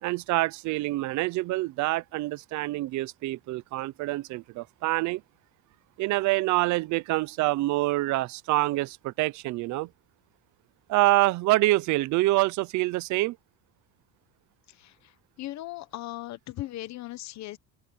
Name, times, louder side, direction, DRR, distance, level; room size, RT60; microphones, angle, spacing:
voice 1, 0.0-5.2 6.0-9.9 10.9-13.4, right 18 dB, 55° right, 0.8 m, -26 dB
voice 2, 14.8-15.1 15.4-17.6, left 15 dB, 50° left, 1.2 m, -38 dB
cardioid pair, 145°, 36 cm